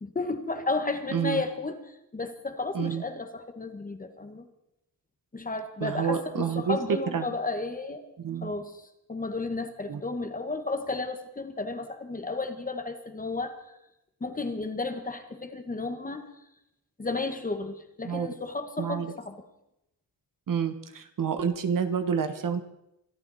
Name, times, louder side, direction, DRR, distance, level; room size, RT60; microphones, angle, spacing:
voice 1, 0.0-1.8 2.1-4.4 5.3-8.0 8.4-8.8 9.1-13.6 14.2-16.2 17.0-19.4, left 3 dB, 20° left, 7 dB, 1.5 m, -33 dB
voice 2, 1.1-1.4 2.7-3.0 5.8-7.3 8.2-8.5 9.9-10.0 18.0-18.3 18.8-19.1 20.5-22.6, right 7 dB, 50° right, 9 dB, 1.4 m, -28 dB
26.0 x 13.0 x 4.2 m, 0.84 s
wide cardioid pair, 165°, 42 cm